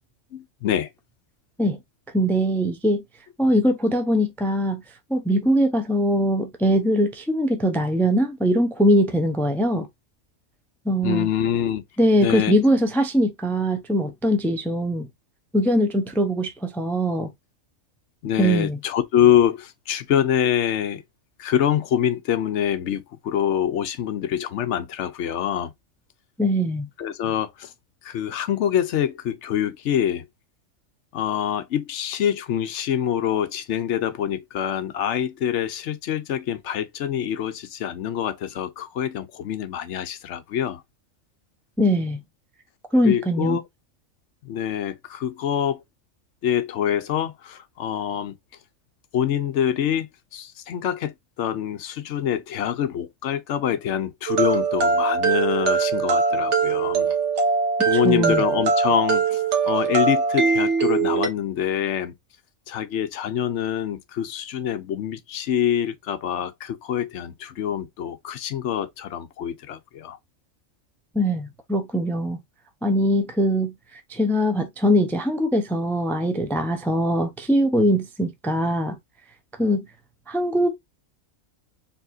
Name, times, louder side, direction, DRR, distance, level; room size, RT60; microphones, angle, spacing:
voice 1, 0.3-0.9 11.0-11.8 12.2-12.5 18.2-21.0 21.4-25.7 27.0-27.7 28.0-30.3 31.1-40.8 43.0-43.6 44.4-45.8 46.4-48.3 49.1-50.1 50.3-57.1 57.9-62.1 62.7-70.2, left 10 dB, 65° left, 0.9 m, -25 dB
voice 2, 2.1-3.0 3.4-4.8 5.1-9.9 10.9-11.3 12.0-15.1 15.5-17.3 18.4-18.8 26.4-26.9 41.8-42.2 42.9-43.6 57.9-58.4 71.1-72.4 72.8-73.7 74.1-78.9 79.6-79.9 80.3-80.7, equal, ahead, 0.4 m, -21 dB
sound 1, 54.3-61.3, right 5 dB, 60° right, 1.4 m, -22 dB
4.7 x 3.4 x 2.6 m
omnidirectional pair, 1.4 m